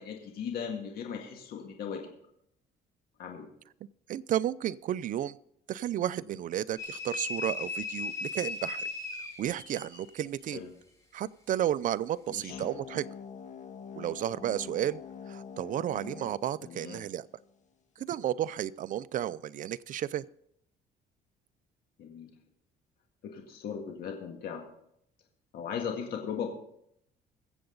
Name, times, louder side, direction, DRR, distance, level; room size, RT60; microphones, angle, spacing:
voice 1, 0.0-2.1 3.2-3.5 10.5-10.7 12.3-12.6 16.6-17.0 22.0-22.3 23.2-24.6 25.5-26.5, left 7 dB, 65° left, 2 dB, 1.9 m, -37 dB
voice 2, 4.1-5.4 5.7-8.8 9.4-10.6 11.1-13.1 14.0-15.0 15.3-17.3 18.0-20.2, right 11 dB, 50° right, 17 dB, 0.5 m, -32 dB
sound 1, 6.8-10.1, left 3 dB, 20° left, 3.4 m, -37 dB
sound 2, 12.5-17.5, left 6 dB, 45° left, 1.6 m, -45 dB
22.0 x 7.9 x 3.9 m, 0.73 s
cardioid pair, 110°, 17 cm